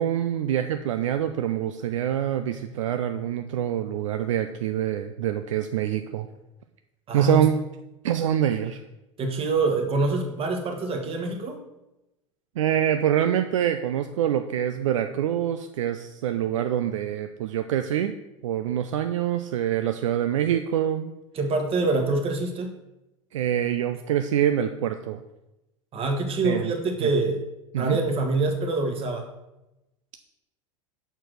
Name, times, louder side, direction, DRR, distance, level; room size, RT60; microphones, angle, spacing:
voice 1, 0.0-6.3 7.1-7.6 8.0-8.8 12.6-18.1 18.4-21.1 23.3-25.2 26.4-26.7 27.0-27.1 27.7-28.0, right 10 dB, 70° right, 8 dB, 0.4 m, -25 dB
voice 2, 7.1-7.5 9.2-11.6 21.3-22.7 25.9-27.4 27.7-29.3, right 3 dB, 35° right, 3 dB, 1.4 m, -25 dB
5.9 x 4.5 x 6.3 m, 0.95 s
figure-of-eight pair, 80°, 17 cm